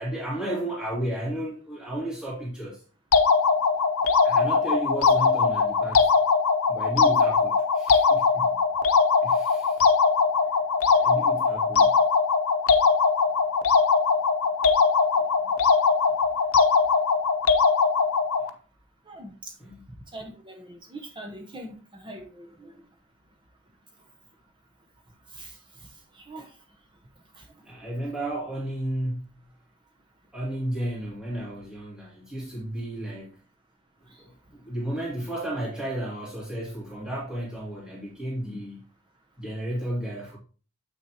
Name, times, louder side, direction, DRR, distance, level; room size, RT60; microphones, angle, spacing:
voice 1, 0.0-2.8 4.2-6.1 6.7-8.7 9.2-9.9 10.9-12.0 19.6-19.8 27.6-29.5 30.3-33.4 34.2-38.8 39.4-40.4, right 1 dB, 5° right, 2.4 m, -33 dB
sound 1, 3.1-18.5, left 5 dB, 85° left, 0.7 m, -21 dB
voice 2, 19.1-19.5 20.1-22.8 25.3-25.6 26.1-26.5 27.3-27.5, right 1 dB, 20° right, 0.9 m, -42 dB
7.7 x 6.1 x 2.9 m
head